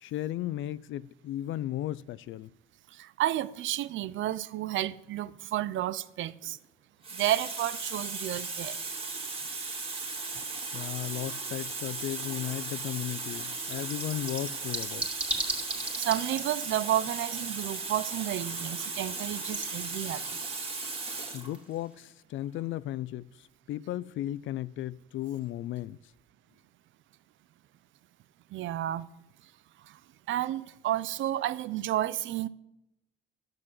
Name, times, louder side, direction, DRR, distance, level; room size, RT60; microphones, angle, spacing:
voice 1, 0.0-2.5 10.7-15.1 21.3-23.3 23.7-26.0, left 13 dB, 75° left, 0.5 m, -35 dB
voice 2, 2.9-6.6 7.1-8.8 16.0-20.6 28.5-29.1 29.8-30.0 30.3-32.5, right 13 dB, 75° right, 0.6 m, -31 dB
Water tap faucet, 6.2-6.5 7.0-21.5 22.4-22.6, right 3 dB, 30° right, 2.1 m, -36 dB
sound 1, 11.7-22.0, right 1 dB, 5° right, 2.3 m, -41 dB
10.5 x 6.2 x 7.6 m
cardioid pair, 90°, 20 cm